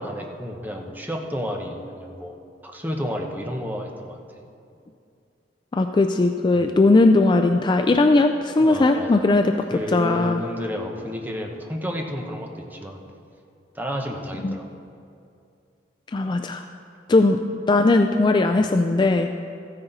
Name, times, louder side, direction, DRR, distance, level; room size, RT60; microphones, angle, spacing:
voice 1, 0.0-2.4 2.6-4.2 6.5-6.8 8.6-9.3 9.7-13.0 13.7-14.7 18.5-18.7, equal, 10° right, 2 dB, 0.9 m, -31 dB
voice 2, 5.7-9.5 9.9-10.4 14.4-14.6 16.1-16.6 17.1-17.4 17.7-19.3, left 2 dB, 25° left, 5 dB, 0.3 m, -18 dB
14.0 x 9.8 x 4.0 m, 2.4 s
head